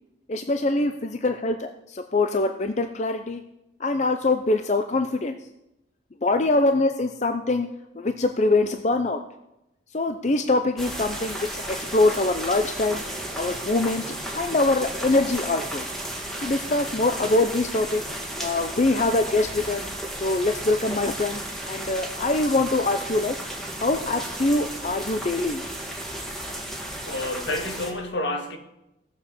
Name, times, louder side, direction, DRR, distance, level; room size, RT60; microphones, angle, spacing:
voice 1, 0.3-3.4 3.8-5.4 6.2-7.7 8.0-9.2 9.9-13.0 13.4-15.8 16.4-18.0 18.4-19.8 20.1-21.4 21.7-23.4 23.8-25.6, left 2 dB, 35° left, 0.6 m, -24 dB
sound 1, 10.8-27.9, right 1 dB, ahead, 1.7 m, -34 dB
voice 2, 27.1-28.6, left 2 dB, 70° left, 1.8 m, -29 dB
16.5 x 7.2 x 7.1 m
head